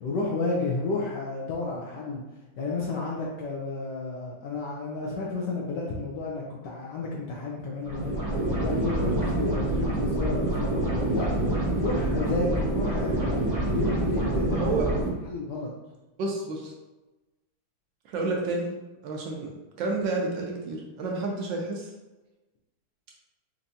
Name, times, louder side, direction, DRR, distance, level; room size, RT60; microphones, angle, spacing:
voice 1, 0.0-2.2 2.6-8.2 8.6-11.3 11.8-14.7 15.2-15.7, left 3 dB, 70° left, -3 dB, 1.1 m, -31 dB
sound 1, 7.8-15.1, right 1 dB, 25° right, 0.4 m, -27 dB
voice 2, 14.5-14.9 16.2-16.7 18.0-18.7 19.0-19.5 19.8-21.9, right 3 dB, 70° right, -1 dB, 1.2 m, -30 dB
4.5 x 2.7 x 2.6 m, 1.1 s
omnidirectional pair, 2.3 m